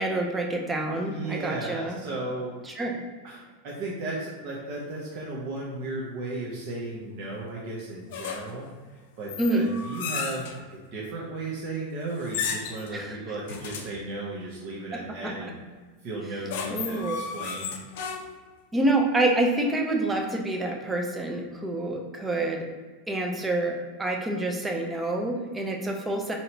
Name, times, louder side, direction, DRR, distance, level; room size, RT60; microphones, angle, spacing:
voice 1, 0.0-2.0 2.7-3.0 9.4-9.7 12.9-13.2 15.4-15.5 16.7-17.2 18.7-22.6 23.1-26.4, right 2 dB, 10° right, 1 dB, 0.5 m, -27 dB
voice 2, 0.8-2.5 3.2-8.7 9.2-15.5 16.0-17.0 17.3-17.7, right 2 dB, 45° right, -5 dB, 0.7 m, -35 dB
sound 1, 8.1-8.7 9.3-10.6 12.2-12.9 13.5-14.0 16.2-18.5, left 6 dB, 65° left, 0.4 m, -34 dB
2.8 x 2.7 x 4.4 m, 1.4 s
supercardioid pair, 160°, 0 cm